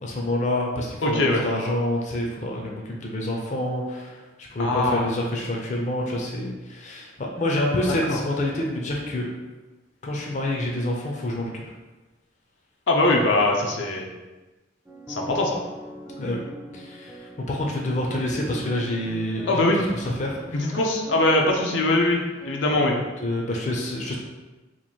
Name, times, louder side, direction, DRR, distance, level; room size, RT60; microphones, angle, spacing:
voice 1, 0.0-9.3 10.0-11.7 16.2-16.4 16.7-20.8 22.8-22.9 23.2-24.2, left 1 dB, 40° left, -1 dB, 0.5 m, -28 dB
voice 2, 1.0-1.4 4.6-5.0 7.9-8.2 12.9-14.1 15.1-15.6 19.5-19.8 20.5-22.9, left 2 dB, 85° left, 0 dB, 0.6 m, -22 dB
sound 1, 14.9-22.7, right 1 dB, 10° right, 0.4 m, -42 dB
3.0 x 2.5 x 4.2 m, 1.2 s
head